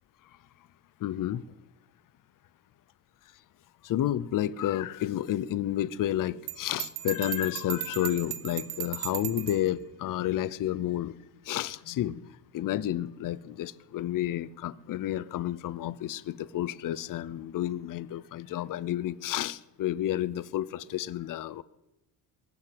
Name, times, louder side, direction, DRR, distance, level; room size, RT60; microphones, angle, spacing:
voice 1, 1.0-1.4 3.8-11.2 11.5-12.2 12.5-21.6, left 12 dB, 45° left, 0.6 m, -31 dB
Bell, 6.5-9.7, right 13 dB, 55° right, 0.9 m, -36 dB
22.5 x 7.6 x 7.8 m
cardioid pair, 145°, 46 cm